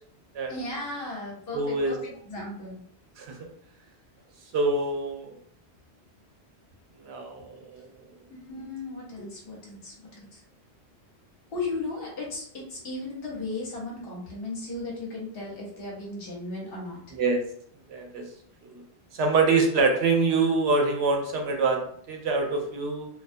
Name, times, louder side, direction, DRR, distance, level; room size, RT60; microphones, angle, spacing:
voice 1, 0.5-2.8 8.5-10.4 11.5-17.1, left 2 dB, 60° left, -3 dB, 1.0 m, -36 dB
voice 2, 1.5-1.9 3.2-3.4 4.5-5.4 7.0-7.8 17.1-17.4 17.9-18.2 18.6-18.8 19.1-23.1, right 3 dB, 75° right, 2 dB, 0.8 m, -25 dB
2.3 x 2.2 x 2.6 m, 0.63 s
omnidirectional pair, 1.1 m